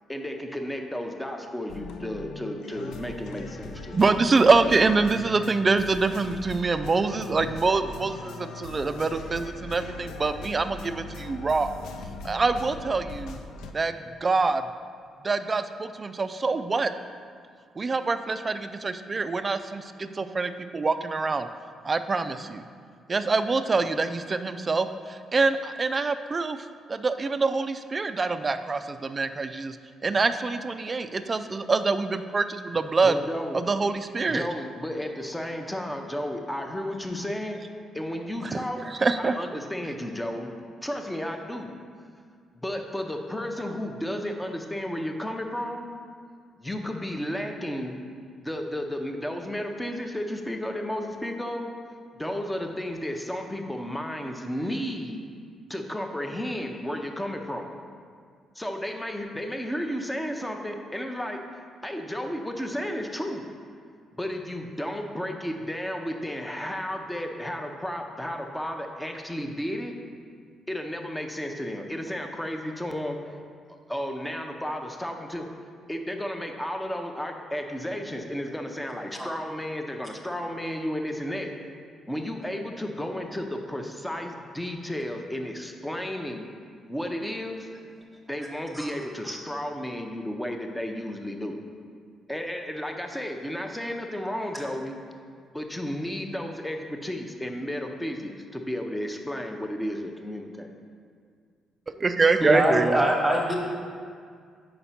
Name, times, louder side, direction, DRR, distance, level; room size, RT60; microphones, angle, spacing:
voice 1, 0.1-4.0 33.0-33.6 34.3-37.7 37.9-38.8 39.2-40.5 40.8-41.8 42.5-45.9 46.6-48.0 48.4-51.7 52.2-55.2 55.7-57.7 58.6-61.4 61.8-63.5 64.2-69.9 70.7-73.2 73.9-75.4 75.9-81.5 82.1-86.5 86.9-87.7 88.3-91.6 92.3-95.0 95.5-100.7, equal, 10° left, 3 dB, 0.6 m, -33 dB
sound 1, 1.7-13.7, left 3 dB, 80° left, 0.4 m, -40 dB
voice 2, 3.9-11.7 12.2-13.4 13.7-14.6 15.2-16.9 17.8-21.5 21.8-22.6 23.1-26.6 26.9-29.8 30.0-33.2 33.5-34.5 38.4-39.4 102.0-103.0, right 4 dB, 30° right, 10 dB, 0.3 m, -25 dB
voice 3, 102.4-103.6, right 1 dB, 10° right, -1 dB, 1.1 m, -23 dB
5.0 x 4.3 x 5.6 m, 2.1 s
cardioid pair, 90°, 0 cm